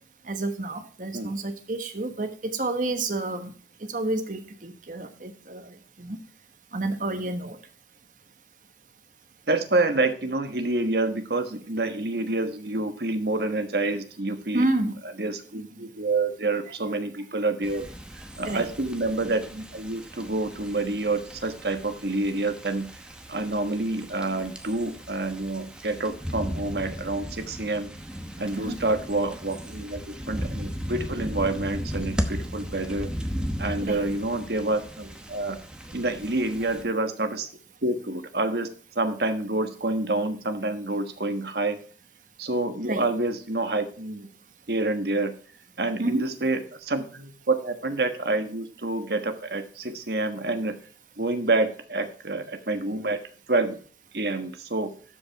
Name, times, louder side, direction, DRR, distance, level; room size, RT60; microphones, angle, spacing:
voice 1, 0.3-3.5 3.9-5.7 6.0-6.2 6.7-7.6 14.5-15.0 18.4-18.7 28.5-28.8 33.8-34.0 42.8-43.1 46.0-46.3, right 2 dB, 45° right, 8 dB, 1.3 m, -29 dB
voice 2, 9.5-14.7 15.2-17.9 18.1-22.9 23.3-27.9 28.4-33.1 33.6-35.6 35.9-37.5 37.8-41.8 42.4-44.3 44.7-45.3 45.8-50.8 51.2-53.2 53.5-53.8 54.1-54.9, right 2 dB, 65° right, 8 dB, 1.4 m, -28 dB
sound 1, 17.6-36.8, equal, 5° right, 0.9 m, -36 dB
12.5 x 5.3 x 4.5 m, 0.44 s
head